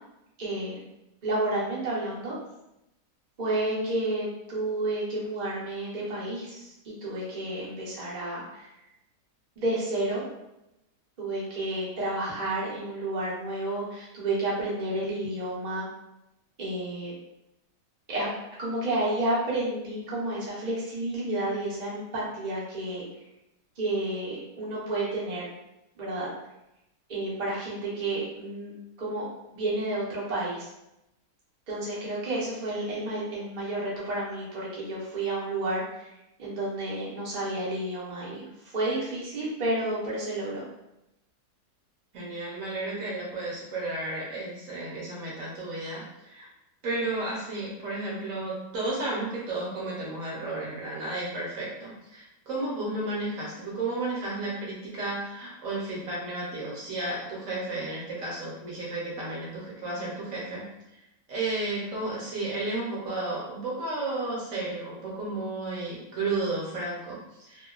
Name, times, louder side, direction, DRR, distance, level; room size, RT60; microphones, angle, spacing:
voice 1, 0.4-0.7 1.2-2.3 3.4-8.7 9.6-10.2 11.2-15.9 16.6-17.1 18.1-18.3 18.6-23.0 23.8-25.5 26.0-26.3 27.1-28.7 29.0-29.2 29.5-30.7 31.7-36.0 36.4-40.6, right 2 dB, 45° right, -7 dB, 0.5 m, -31 dB
voice 2, 42.1-46.5 46.8-60.7 61.3-67.7, right 2 dB, 60° right, -5 dB, 1.0 m, -33 dB
2.8 x 2.2 x 2.3 m, 0.89 s
omnidirectional pair, 1.7 m